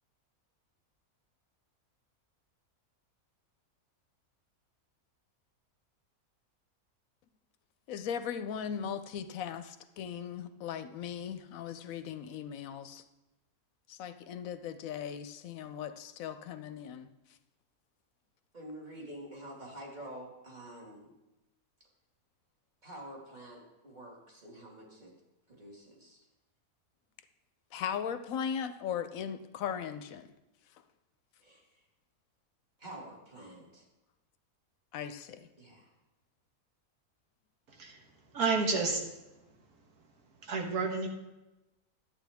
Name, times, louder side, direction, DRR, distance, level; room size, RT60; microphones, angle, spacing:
voice 1, 7.9-13.0 13.9-17.1 27.7-30.3 34.9-35.5, left 8 dB, 70° left, 11 dB, 0.9 m, -38 dB
voice 2, 18.5-21.1 22.8-25.1 25.5-26.3 31.4-31.8 32.8-33.9 35.6-35.9, right 1 dB, 30° right, -3 dB, 2.2 m, -48 dB
voice 3, 38.3-39.0 40.4-41.1, right 4 dB, 80° right, 2 dB, 1.8 m, -30 dB
11.0 x 8.7 x 3.5 m, 1.0 s
omnidirectional pair, 1.6 m